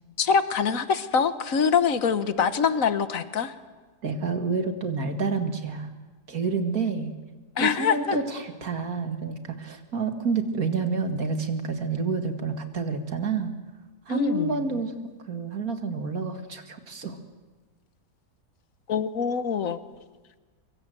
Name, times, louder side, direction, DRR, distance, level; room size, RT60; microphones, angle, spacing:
voice 1, 0.2-3.5 7.6-8.1 14.1-14.8 18.9-19.8, left 6 dB, 55° left, 12 dB, 1.5 m, -24 dB
voice 2, 4.0-5.9 6.3-7.1 7.6-13.5 14.1-14.9 15.3-17.2, right 4 dB, 60° right, 6 dB, 2.4 m, -28 dB
24.5 x 24.0 x 7.8 m, 1.3 s
omnidirectional pair, 1.8 m